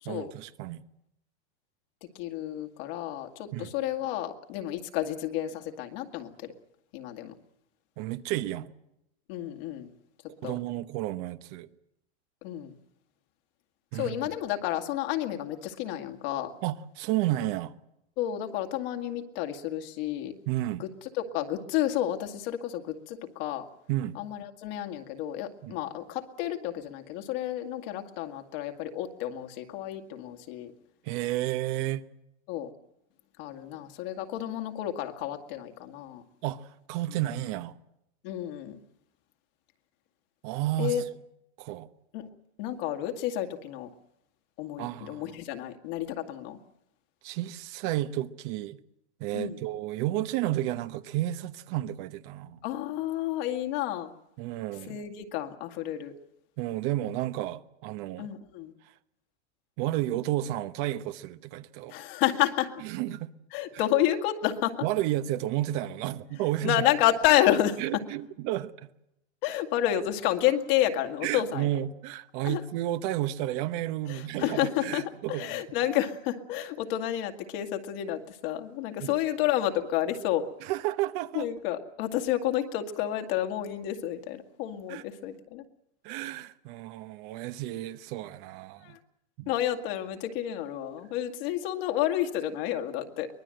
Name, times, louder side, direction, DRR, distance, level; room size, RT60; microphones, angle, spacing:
voice 1, 0.0-0.8 3.5-3.7 8.0-8.7 10.4-11.7 13.9-14.2 16.6-17.7 20.5-20.8 23.9-24.2 25.6-25.8 31.0-32.1 36.4-37.8 40.4-41.0 41.6-41.9 44.8-45.2 47.2-48.8 49.2-52.6 54.4-55.0 56.6-58.3 59.8-61.9 62.8-63.3 63.7-63.8 64.8-66.8 67.8-68.7 71.2-75.6 79.0-79.1 80.6-81.5 84.9-85.0 86.0-89.0 89.4-89.5, right 14 dB, 50° right, 1.0 m, -32 dB
voice 2, 2.2-6.3 6.9-7.3 9.3-9.9 10.4-10.6 12.4-12.7 13.9-16.5 18.2-20.3 20.8-20.9 21.1-23.6 24.2-30.7 32.5-32.7 33.4-36.2 38.2-38.8 40.8-41.0 42.1-42.3 42.6-43.9 44.6-46.6 49.3-49.6 52.6-54.1 54.9-56.1 58.2-58.7 61.9-62.7 63.5-64.8 66.6-67.8 69.4-71.7 72.4-72.6 74.1-80.5 81.3-85.6 88.8-89.0 89.5-93.3, left 12 dB, 55° left, 2.2 m, -30 dB
24.0 x 19.5 x 7.8 m
supercardioid pair, 140°, 34 cm